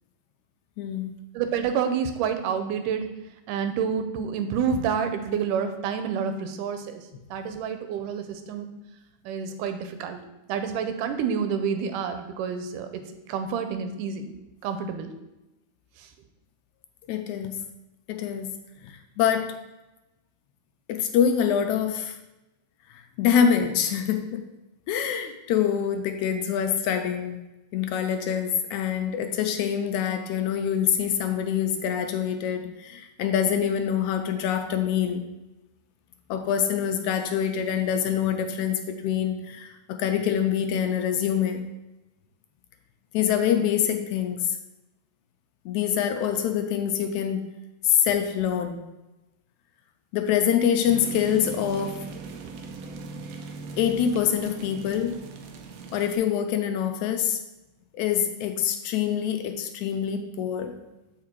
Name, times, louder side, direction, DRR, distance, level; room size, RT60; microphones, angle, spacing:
voice 1, 0.8-1.2 7.1-7.2 17.1-17.6 18.1-18.5 18.8-19.5 20.9-22.2 22.9-24.5 24.9-27.4 27.7-35.2 36.3-41.7 43.1-44.6 45.7-47.4 47.8-48.8 50.1-52.0 53.8-55.2 55.9-57.4 57.9-60.8, left 8 dB, 80° left, 6 dB, 1.9 m, -25 dB
voice 2, 1.4-3.0 3.5-7.0 7.3-8.7 9.3-10.2 10.5-13.0 13.3-14.3 14.6-15.1, right 7 dB, 90° right, 8 dB, 2.3 m, -28 dB
sound 1, 50.8-56.2, right 4 dB, 75° right, 1.6 m, -39 dB
7.5 x 4.8 x 4.5 m, 0.98 s
omnidirectional pair, 3.6 m